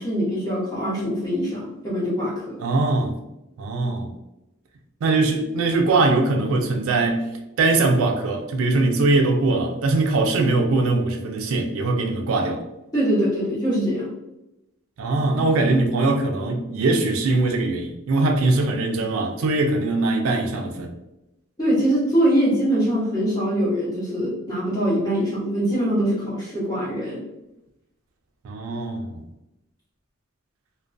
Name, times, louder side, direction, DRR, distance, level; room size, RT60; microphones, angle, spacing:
voice 1, 0.0-2.6 12.9-14.1 21.6-27.2, equal, 20° left, 0.9 m, -23 dB
voice 2, 2.6-3.2 3.6-4.1 5.0-7.3 7.6-12.6 15.0-20.9 28.4-29.2, right 2 dB, 80° right, 0.3 m, -21 dB
2.3 x 2.1 x 2.4 m
head